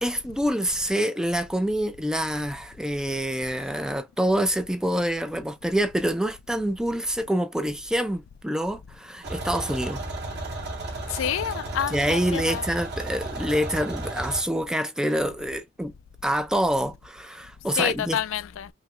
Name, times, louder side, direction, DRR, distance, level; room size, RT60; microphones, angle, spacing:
voice 1, 0.0-10.0 11.9-15.9 16.2-18.2, equal, 5° right, 0.3 m, -26 dB
sound 1, 9.2-14.4, right 2 dB, 55° right, 1.7 m, -33 dB
voice 2, 11.1-12.6 17.8-18.7, left 9 dB, 75° left, 0.3 m, -28 dB
5.6 x 2.1 x 2.4 m
head